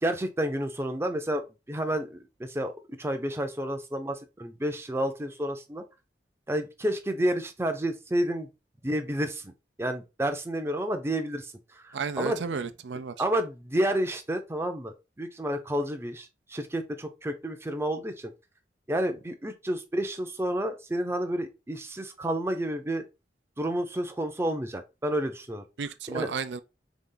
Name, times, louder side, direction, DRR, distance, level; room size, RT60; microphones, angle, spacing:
voice 1, 0.0-1.4 1.7-5.8 6.5-8.5 8.8-9.5 9.8-11.5 11.8-12.4 13.2-18.3 18.9-23.0 23.6-25.6 26.1-26.3, right 1 dB, 15° right, 0.6 m, -30 dB
voice 2, 11.9-13.1 25.8-26.6, right 5 dB, 85° right, 0.5 m, -33 dB
4.1 x 3.5 x 3.8 m
head